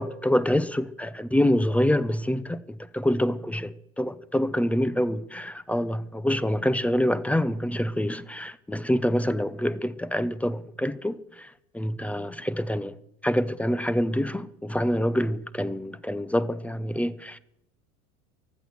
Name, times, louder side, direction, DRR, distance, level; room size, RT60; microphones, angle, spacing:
voice 1, 0.0-13.0 13.2-17.4, equal, 5° left, 0.6 m, -26 dB
15.0 x 11.5 x 6.9 m
figure-of-eight pair, 85°, 43 cm